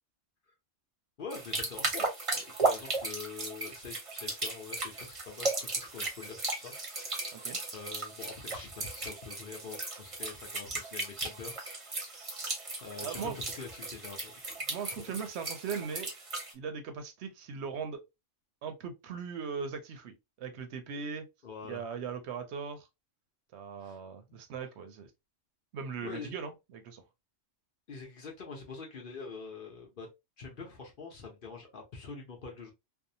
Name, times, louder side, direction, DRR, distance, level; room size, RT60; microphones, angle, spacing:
voice 1, 1.2-2.1 2.6-7.2 7.7-12.1 12.8-14.7 15.0-15.1 20.9-21.0 21.4-21.8 23.8-24.0 24.3-24.4 26.0-26.3 27.9-30.1 30.4-32.7, left 4 dB, 50° left, 0.8 m, -45 dB
sound 1, 1.3-16.5, right 3 dB, 35° right, 0.7 m, -36 dB
voice 2, 13.0-13.4 14.7-16.1 16.5-18.0 18.6-21.2 21.7-22.9 23.5-25.1 25.7-27.0, right 6 dB, 70° right, 0.8 m, -39 dB
2.6 x 2.0 x 2.6 m
omnidirectional pair, 1.2 m